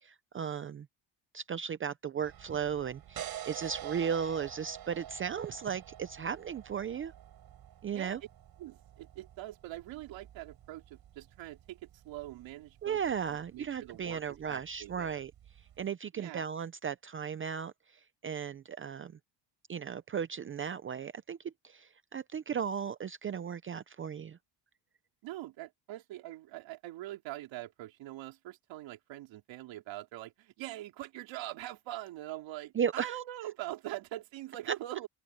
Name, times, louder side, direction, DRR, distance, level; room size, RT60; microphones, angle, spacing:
voice 1, 0.0-0.9 1.3-7.1 7.8-8.2 12.8-15.3 15.8-19.2 19.7-24.4 32.7-33.1 34.7-34.8, right 7 dB, 30° right, 0.6 m, -36 dB
sound 1, 2.2-15.8, right 11 dB, 55° right, 6.9 m, -49 dB
voice 2, 8.6-13.0 13.3-15.2 16.1-16.4 25.2-35.1, right 15 dB, 80° right, 3.6 m, -43 dB
open air
cardioid pair, 145°, 45 cm